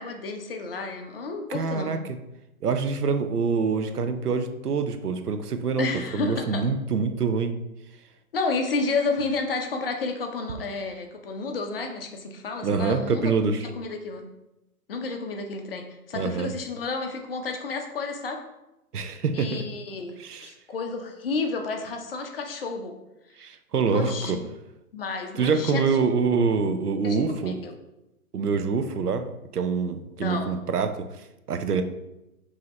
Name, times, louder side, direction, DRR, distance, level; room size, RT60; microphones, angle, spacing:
voice 1, 0.0-1.9 5.8-6.6 8.3-13.3 13.6-14.3 14.9-18.4 19.3-20.2 20.4-23.0 23.9-24.4 24.9-26.0 27.0-27.7 30.2-30.6, left 3 dB, 40° left, 4 dB, 0.6 m, -31 dB
voice 2, 1.5-2.2 2.6-5.9 6.1-7.5 12.6-13.7 16.1-16.5 18.9-19.6 20.2-20.5 23.4-24.4 25.4-27.6 28.3-31.8, right 5 dB, 85° right, 8 dB, 0.6 m, -25 dB
4.8 x 2.8 x 3.1 m, 0.93 s
figure-of-eight pair, 125°, 45 cm